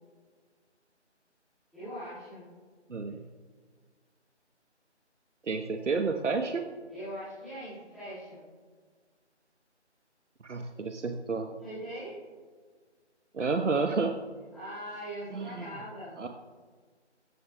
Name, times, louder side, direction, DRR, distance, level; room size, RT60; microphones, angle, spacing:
voice 1, 1.7-2.4 3.0-3.1 6.9-8.4 11.6-12.2 14.5-16.2, equal, ahead, -24 dB, 1.9 m, -41 dB
voice 2, 5.4-6.6 10.4-11.5 13.3-14.2 15.3-15.7 16.2-16.3, right 4 dB, 85° right, 5 dB, 1.1 m, -30 dB
17.0 x 13.5 x 2.3 m, 1.6 s
figure-of-eight pair, 180°, 35 cm